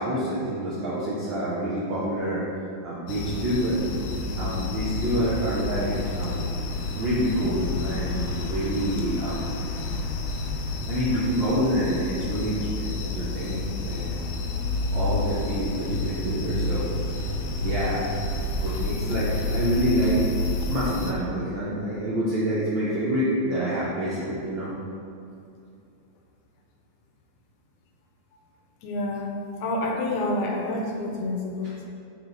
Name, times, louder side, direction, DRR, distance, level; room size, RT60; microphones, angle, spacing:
voice 1, 0.0-2.4 2.8-4.0 4.4-6.7 6.9-9.6 10.9-14.1 14.9-16.9 17.6-18.0 18.6-20.2 20.7-24.7, equal, 75° right, -8 dB, 1.1 m, -27 dB
sound 1, 3.1-21.1, left 2 dB, 90° left, 1.3 m, -29 dB
voice 2, 28.8-29.3 29.6-31.9, left 2 dB, 70° left, 0 dB, 1.9 m, -28 dB
6.5 x 4.5 x 4.0 m, 2.5 s
omnidirectional pair, 3.4 m